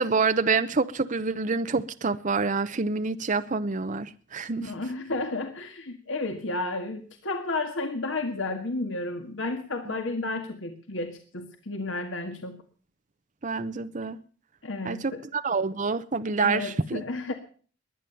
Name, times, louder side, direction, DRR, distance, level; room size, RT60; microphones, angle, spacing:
voice 1, 0.0-4.7 9.9-10.0 13.4-14.2 14.8-17.0, right 4 dB, 40° right, 0.7 m, -27 dB
voice 2, 4.6-12.6 14.6-15.2 16.4-17.3, left 2 dB, 75° left, 1.9 m, -32 dB
21.5 x 9.3 x 6.9 m
head